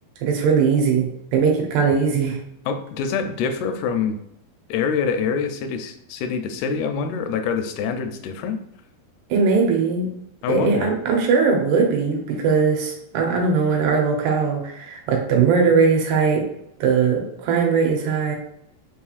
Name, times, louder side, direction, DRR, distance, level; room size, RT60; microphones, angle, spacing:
voice 1, 0.2-2.4 9.3-10.1 10.5-16.5 16.8-18.4, right 5 dB, 85° right, 1 dB, 2.9 m, -20 dB
voice 2, 2.7-4.2 4.7-8.6 10.4-10.9, left 5 dB, 85° left, 7 dB, 2.4 m, -25 dB
6.2 x 2.9 x 2.4 m, 0.74 s
omnidirectional pair, 4.5 m